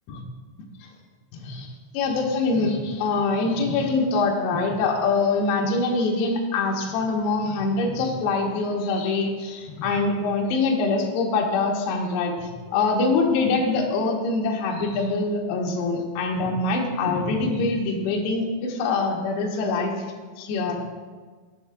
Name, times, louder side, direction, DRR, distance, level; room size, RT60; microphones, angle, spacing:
voice 1, 1.3-1.7 1.9-19.9 20.4-20.8, left 3 dB, 75° left, 0 dB, 2.8 m, -24 dB
15.5 x 6.6 x 2.3 m, 1.4 s
omnidirectional pair, 5.3 m